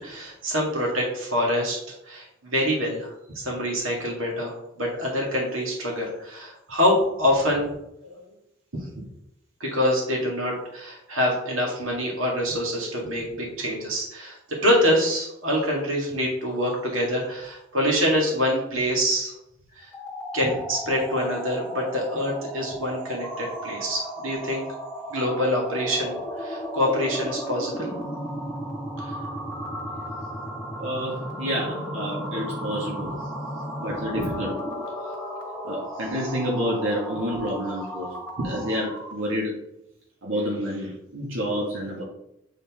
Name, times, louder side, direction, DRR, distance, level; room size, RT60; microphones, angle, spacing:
voice 1, 0.0-1.8 2.0-7.7 8.0-8.2 9.6-14.4 14.6-19.3 19.8-19.9 20.3-24.7 25.1-27.9 29.0-29.2 34.2-34.3, equal, 90° right, -2 dB, 2.0 m, -25 dB
sound 1, 19.8-39.2, equal, 5° left, 1.2 m, -34 dB
voice 2, 30.8-33.2 33.8-34.5 35.6-38.1 38.5-39.5 40.2-42.0, equal, 70° right, -5 dB, 1.9 m, -29 dB
8.2 x 4.1 x 3.6 m, 0.82 s
head